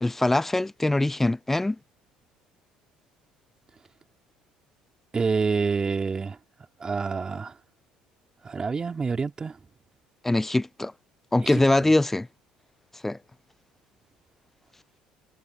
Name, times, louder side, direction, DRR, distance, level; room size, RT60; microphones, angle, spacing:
voice 1, 0.0-1.8 10.2-10.9 11.3-12.3 13.0-13.2, left 2 dB, 10° left, 0.6 m, -23 dB
voice 2, 5.1-6.4 6.8-7.5 8.4-9.6 11.4-11.5, right 4 dB, 30° right, 2.8 m, -27 dB
supercardioid pair, 75°, 3 cm